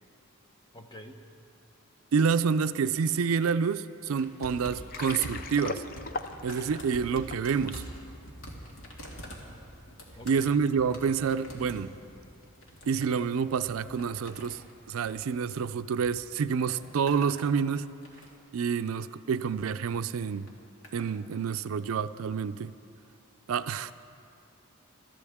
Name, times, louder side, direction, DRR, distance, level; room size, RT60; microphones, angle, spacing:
voice 1, 0.7-1.2 10.1-10.6, left 1 dB, 20° left, 4 dB, 0.8 m, -45 dB
voice 2, 2.1-5.8 6.4-7.8 10.3-11.9 12.9-14.6 14.9-17.9 18.5-20.5 20.9-22.7 23.5-23.9, right 6 dB, 75° right, 12 dB, 0.4 m, -28 dB
sound 1, 4.2-16.1 16.4-17.4 17.8-18.5 19.4-19.7 20.5-21.1 22.0-22.1, equal, 70° left, 2.3 m, -46 dB
Water, 4.7-7.9, left 3 dB, 40° left, 0.5 m, -38 dB
22.5 x 13.5 x 3.6 m, 2.4 s
head